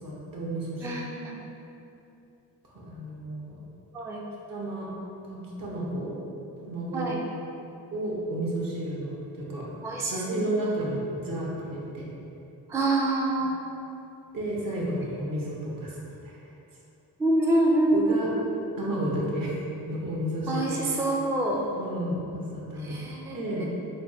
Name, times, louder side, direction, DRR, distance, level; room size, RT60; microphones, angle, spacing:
voice 1, 0.0-1.0 2.7-3.6 4.5-4.9 5.2-6.1 6.6-7.1 7.9-9.7 10.1-12.1 13.4-13.5 14.3-16.4 17.9-18.3 18.8-20.6 21.7-23.0 23.3-23.7, right 1 dB, 60° right, -4 dB, 1.0 m, -32 dB
voice 2, 0.8-1.4 3.9-4.2 6.9-7.2 9.8-10.2 12.7-13.7 17.2-18.2 20.5-21.7 22.8-23.7, right 1 dB, 10° right, -2 dB, 0.3 m, -26 dB
3.3 x 2.2 x 4.1 m, 2.8 s
cardioid pair, 70°, 38 cm